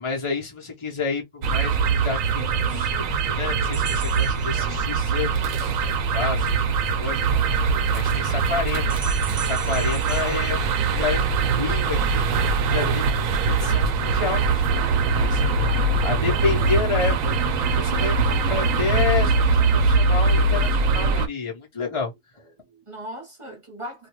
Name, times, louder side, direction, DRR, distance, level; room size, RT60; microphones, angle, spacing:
voice 1, 0.0-14.9 15.1-22.1, left 4 dB, 30° left, 0.7 m, -30 dB
sound 1, 1.4-21.3, right 4 dB, 85° right, 1.0 m, -22 dB
sound 2, 3.7-5.3 8.9-11.4, right 5 dB, 50° right, 0.7 m, -38 dB
voice 2, 22.6-24.1, equal, 25° right, 0.9 m, -41 dB
2.5 x 2.3 x 2.9 m
omnidirectional pair, 1.3 m